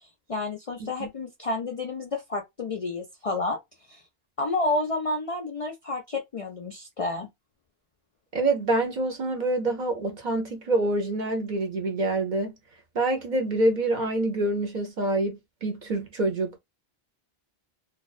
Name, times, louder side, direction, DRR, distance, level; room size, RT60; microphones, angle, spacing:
voice 1, 0.3-3.6 3.9-4.0 4.4-7.3, left 2 dB, 45° left, 0.4 m, -30 dB
voice 2, 8.3-12.5 12.9-16.6, right 2 dB, 50° right, 0.8 m, -26 dB
2.3 x 2.2 x 2.3 m
omnidirectional pair, 1.1 m